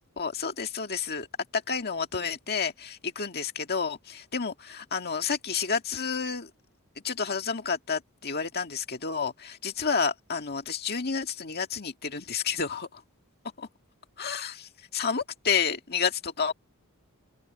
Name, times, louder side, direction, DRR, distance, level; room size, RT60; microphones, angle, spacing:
voice 1, 0.2-1.3 1.5-6.5 7.0-13.0 13.6-13.7 14.2-16.5, left 5 dB, 45° left, 1.9 m, -30 dB
open air
head